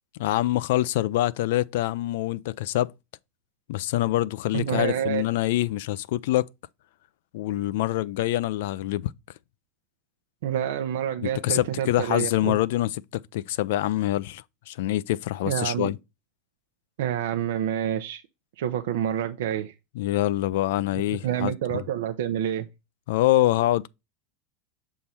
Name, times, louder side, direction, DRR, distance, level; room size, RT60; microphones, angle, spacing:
voice 1, 0.2-2.9 3.7-6.5 7.3-9.1 11.2-16.0 20.0-21.8 23.1-23.9, left 15 dB, 75° left, 0.4 m, -25 dB
voice 2, 4.5-5.2 10.4-12.6 15.5-15.9 17.0-18.2 18.6-19.7 21.2-22.7, right 10 dB, 80° right, 0.6 m, -28 dB
6.7 x 3.6 x 4.2 m
hypercardioid pair, 100°, 0 cm